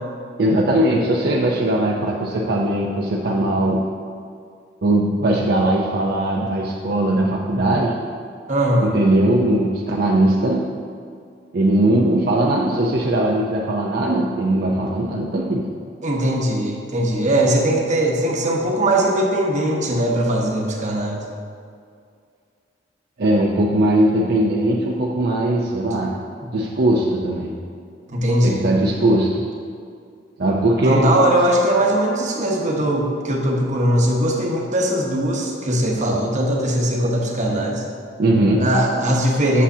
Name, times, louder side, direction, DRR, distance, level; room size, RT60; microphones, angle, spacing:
voice 1, 0.4-3.8 4.8-8.0 8.8-10.6 11.5-15.7 23.2-26.1 26.5-27.5 28.4-29.5 30.4-31.1 38.2-38.7, right 1 dB, 60° right, -2 dB, 0.6 m, -19 dB
voice 2, 8.5-8.9 16.0-21.2 26.4-26.5 28.1-28.7 30.8-37.8 38.6-39.6, right 1 dB, 40° right, -1 dB, 1.0 m, -20 dB
8.4 x 7.0 x 2.7 m, 2.3 s
head